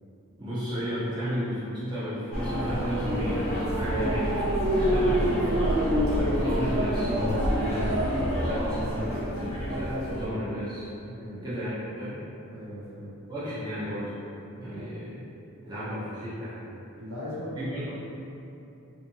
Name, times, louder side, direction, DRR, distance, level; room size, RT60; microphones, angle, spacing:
voice 1, 0.4-3.5 3.8-5.3 6.0-8.0 8.3-10.9 11.4-12.2 13.3-14.1 14.6-15.1 15.6-16.6 17.6-18.0, equal, 20° right, -12 dB, 0.8 m, -34 dB
lbg-wat-jubilee, 2.3-10.3, equal, 30° left, 0.7 m, -26 dB
voice 2, 5.5-5.8 11.1-11.4 12.5-13.1 14.6-14.9 17.0-17.7, equal, 75° right, -7 dB, 0.6 m, -39 dB
2.8 x 2.6 x 2.6 m, 2.7 s
head